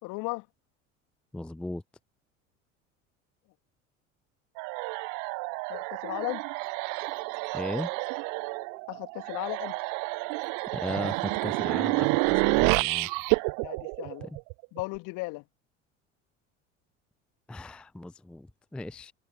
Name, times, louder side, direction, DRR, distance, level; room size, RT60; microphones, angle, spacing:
voice 1, 0.0-0.5 5.7-6.4 8.9-9.8 13.6-14.3 14.7-15.4, left 25 dB, 55° left, 2.6 m, -35 dB
voice 2, 1.3-1.8 7.5-7.9 10.7-13.1 17.5-19.1, left 1 dB, 5° left, 0.5 m, -37 dB
sound 1, 4.6-14.8, right 32 dB, 55° right, 1.1 m, -29 dB
sound 2, 6.6-13.2, right 7 dB, 80° right, 5.2 m, -58 dB
open air
figure-of-eight pair, 65°, 38 cm